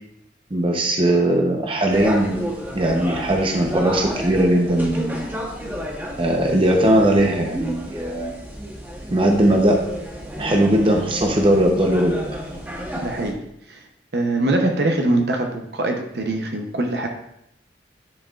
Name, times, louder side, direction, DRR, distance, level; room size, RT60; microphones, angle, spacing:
voice 1, 0.5-2.4 2.7-5.2 6.2-8.3 9.1-9.8 10.4-12.4, right 1 dB, 30° right, 2 dB, 0.7 m, -19 dB
sound 1, 1.9-13.3, equal, 10° right, 0.9 m, -32 dB
voice 2, 13.0-13.4 13.7-13.8 14.1-17.1, right 2 dB, 60° right, 3 dB, 0.8 m, -22 dB
10.5 x 4.6 x 2.4 m, 0.79 s
head